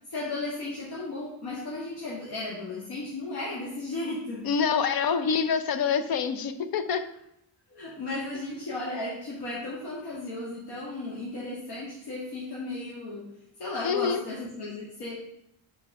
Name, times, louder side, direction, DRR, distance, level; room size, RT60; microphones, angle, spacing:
voice 1, 0.1-4.4 7.7-13.3 13.6-15.2, left 2 dB, 85° left, -6 dB, 1.9 m, -35 dB
voice 2, 4.4-7.1 13.8-14.2, left 6 dB, 65° left, 11 dB, 0.7 m, -26 dB
6.2 x 4.7 x 5.3 m, 0.80 s
wide cardioid pair, 180°, 38 cm